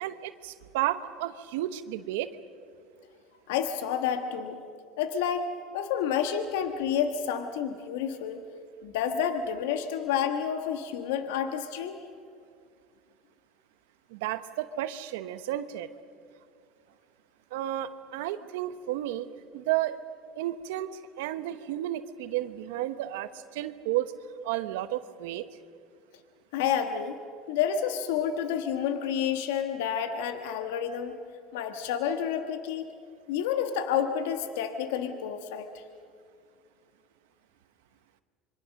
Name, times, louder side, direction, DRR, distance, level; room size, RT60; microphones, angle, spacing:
voice 1, 0.0-2.3 14.1-15.9 17.5-19.3 19.5-20.0 20.4-24.1 24.4-25.4, right 14 dB, 80° right, 12 dB, 1.0 m, -32 dB
voice 2, 3.5-4.6 5.0-8.4 8.8-12.0 26.5-27.2 27.5-31.2 31.5-32.9 33.3-35.8, left 8 dB, 80° left, 7 dB, 1.4 m, -29 dB
25.5 x 24.0 x 6.5 m, 2.3 s
supercardioid pair, 95°, 0 cm